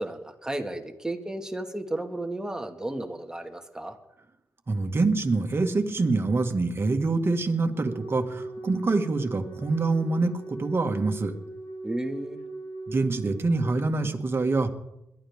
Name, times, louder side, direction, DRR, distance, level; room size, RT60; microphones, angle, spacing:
voice 1, 0.0-4.0 11.8-12.4, right 1 dB, 10° right, 4 dB, 1.9 m, -33 dB
voice 2, 4.7-11.3 12.9-14.7, right 3 dB, 40° right, 5 dB, 1.9 m, -25 dB
Wind instrument woodwind instrument, 7.7-13.8, right 2 dB, 75° left, 7.1 m, -40 dB
21.5 x 12.0 x 3.6 m, 0.86 s
cardioid pair, 70°, 6 cm